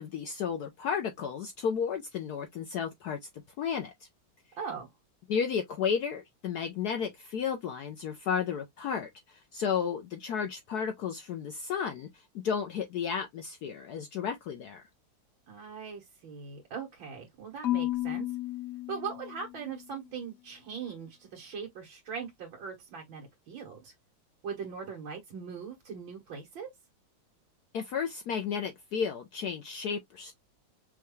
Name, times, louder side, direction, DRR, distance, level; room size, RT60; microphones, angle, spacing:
voice 1, 0.0-3.3 3.6-3.9 5.3-14.8 27.7-30.3, left 7 dB, 65° left, 1.1 m, -33 dB
voice 2, 4.6-4.9 15.5-18.3 18.9-23.9 24.4-26.7, right 6 dB, 90° right, 2.1 m, -40 dB
Marimba xylophone / Wood, 17.6-19.8, left 15 dB, 80° left, 0.7 m, -33 dB
5.6 x 2.3 x 3.1 m
omnidirectional pair, 2.1 m